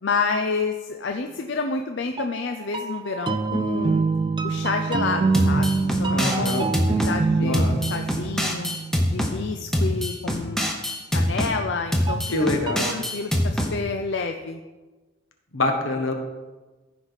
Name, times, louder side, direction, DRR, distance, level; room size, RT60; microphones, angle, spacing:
voice 1, 0.0-4.1 4.4-8.7 9.1-10.8 11.1-12.2 12.9-14.6, left 4 dB, 60° left, 5 dB, 0.5 m, -29 dB
sound 1, 2.2-9.8 12.1-12.9, right 4 dB, 25° right, 0.3 m, -26 dB
sound 2, 5.3-7.2 7.5-9.3 9.7-11.5 11.9-13.7, equal, ahead, 0.8 m, -24 dB
voice 2, 6.1-6.7 7.4-7.8 12.3-13.0 15.5-16.1, left 2 dB, 80° left, 3 dB, 1.5 m, -25 dB
15.0 x 5.1 x 4.1 m, 1.2 s
head